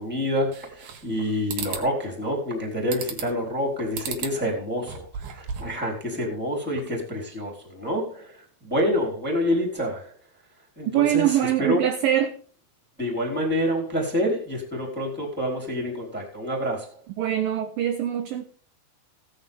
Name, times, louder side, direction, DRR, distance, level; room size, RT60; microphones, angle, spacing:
voice 1, 0.0-10.1 10.8-11.8 13.0-17.0, equal, ahead, 3.5 m, -27 dB
sound 1, 0.5-1.2 1.5-1.9 2.9-3.4 3.9-4.4 4.8-5.8, right 6 dB, 60° right, 2.8 m, -34 dB
voice 2, 10.9-12.3 17.2-18.4, right 12 dB, 75° right, 2.1 m, -23 dB
16.5 x 9.4 x 3.7 m
omnidirectional pair, 5.0 m